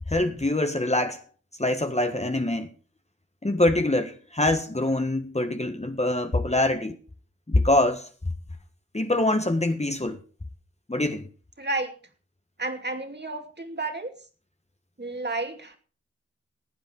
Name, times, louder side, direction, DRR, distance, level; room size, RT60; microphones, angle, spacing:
voice 1, 0.1-1.2 1.6-2.7 3.4-7.0 7.5-8.1 8.9-10.2 10.9-11.3, left 1 dB, 20° left, 1.4 m, -24 dB
voice 2, 11.6-11.9 12.6-14.1 15.0-15.8, right 2 dB, 35° right, 2.7 m, -31 dB
15.5 x 9.0 x 5.3 m
cardioid pair, 50°, 30 cm